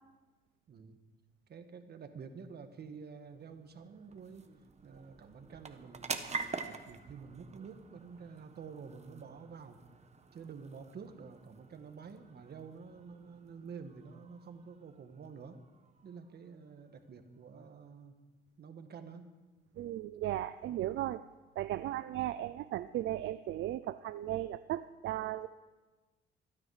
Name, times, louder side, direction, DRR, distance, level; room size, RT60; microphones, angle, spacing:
voice 1, 0.7-1.0 1.5-4.5 4.8-9.8 10.3-15.6 16.0-18.1 18.6-19.3, right 5 dB, 55° right, 7 dB, 1.6 m, -49 dB
sound 1, 2.6-17.5, right 4 dB, 35° right, 1.2 m, -47 dB
voice 2, 19.8-21.2 21.6-25.5, right 13 dB, 70° right, 12 dB, 0.5 m, -36 dB
26.5 x 9.7 x 4.9 m, 1.2 s
cardioid pair, 90°, 20 cm